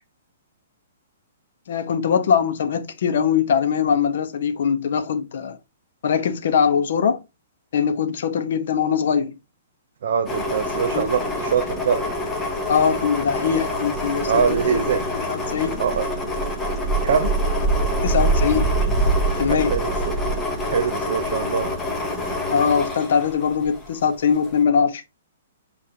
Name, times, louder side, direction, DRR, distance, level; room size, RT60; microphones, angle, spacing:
voice 1, 1.7-5.6 6.0-7.2 7.7-9.4 10.9-11.1 12.7-14.4 14.7-15.0 15.3-15.8 18.0-18.7 19.4-19.7 22.5-25.0, left 7 dB, 55° left, 0.7 m, -21 dB
voice 2, 10.0-12.0 14.2-15.0 15.8-16.1 17.0-17.3 19.5-20.1 20.6-21.7, right 7 dB, 55° right, 0.4 m, -23 dB
sound 1, 10.3-24.0 24.4-24.5, right 1 dB, 5° left, 0.8 m, -25 dB
6.7 x 2.5 x 2.8 m
hypercardioid pair, 170°, 0 cm